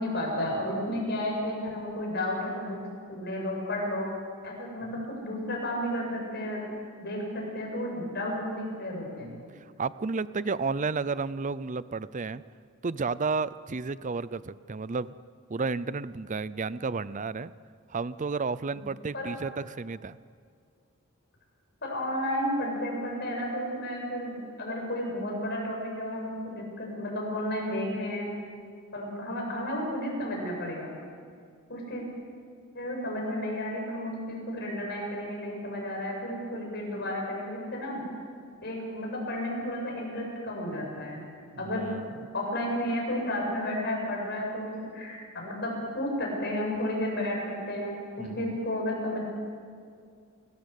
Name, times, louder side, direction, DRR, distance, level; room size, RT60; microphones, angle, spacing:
voice 1, 0.0-2.8 3.1-4.1 4.4-6.6 7.0-9.4 18.7-18.8 19.1-19.3 21.8-28.3 28.9-31.0 31.7-32.0 32.7-38.0 38.6-41.2 41.6-41.9 42.3-49.2, left 1 dB, 50° left, -1 dB, 7.9 m, -32 dB
voice 2, 9.8-12.4 12.8-15.2 15.5-17.5 17.9-20.2 41.6-42.0 48.2-48.6, right 4 dB, 35° right, 17 dB, 0.5 m, -32 dB
29.0 x 18.0 x 8.4 m, 2.2 s
head